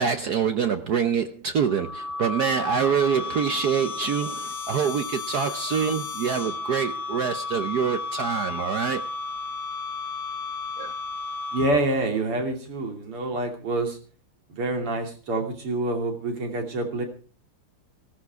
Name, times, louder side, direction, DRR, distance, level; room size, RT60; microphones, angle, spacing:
voice 1, 0.0-9.1 10.8-10.9, right 7 dB, 60° right, 1.2 m, -25 dB
sound 1, 1.6-12.0, left 4 dB, 70° left, 1.7 m, -33 dB
voice 2, 11.5-14.0 14.5-17.0, right 2 dB, 90° right, 3.8 m, -27 dB
16.5 x 13.5 x 4.7 m
omnidirectional pair, 2.4 m